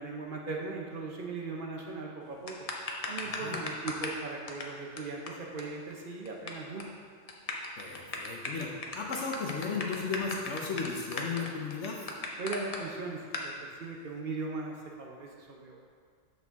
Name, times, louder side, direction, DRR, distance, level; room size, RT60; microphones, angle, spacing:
voice 1, 0.0-2.6 3.1-6.9 12.4-15.8, right 3 dB, 50° right, 0 dB, 0.7 m, -39 dB
sound 1, 2.5-4.2 4.5-4.6 5.0-5.1 5.3-5.4 5.6-5.7 5.9-6.5 6.8-7.0 7.3-12.8 13.3-13.5, left 3 dB, 40° left, 0.5 m, -36 dB
voice 2, 3.2-3.6 7.8-12.1, left 5 dB, 70° left, -1 dB, 1.0 m, -35 dB
7.8 x 4.6 x 3.5 m, 2.1 s
omnidirectional pair, 1.3 m